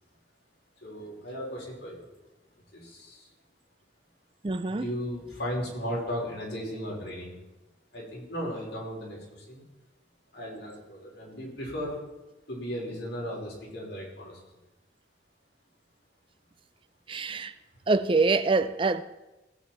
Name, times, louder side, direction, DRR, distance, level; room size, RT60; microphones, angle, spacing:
voice 1, 0.8-2.1 2.7-3.3 4.7-7.4 7.9-9.6 10.3-12.0 12.5-14.4, equal, 70° left, 4.9 m, -36 dB
voice 2, 4.4-4.9 17.1-17.5 17.9-19.0, right 3 dB, 30° right, 0.4 m, -25 dB
17.5 x 8.0 x 4.5 m
head